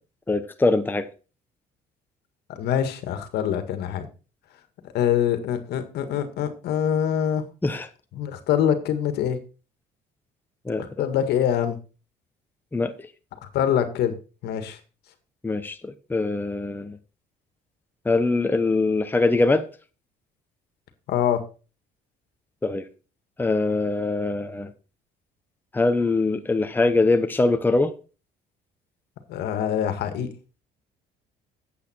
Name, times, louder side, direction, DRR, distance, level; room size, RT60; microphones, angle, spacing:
voice 1, 0.3-1.1 7.6-7.9 10.6-11.1 12.7-13.1 15.4-17.0 18.0-19.7 22.6-22.8 23.4-24.7 25.7-27.9, left 3 dB, 10° left, 0.9 m, -23 dB
voice 2, 2.6-4.1 4.9-7.4 8.2-9.4 10.8-11.8 13.5-14.1 14.4-14.8 21.1-21.4 29.3-30.3, left 9 dB, 75° left, 1.8 m, -24 dB
8.5 x 8.3 x 4.4 m
cardioid pair, 110°, 17 cm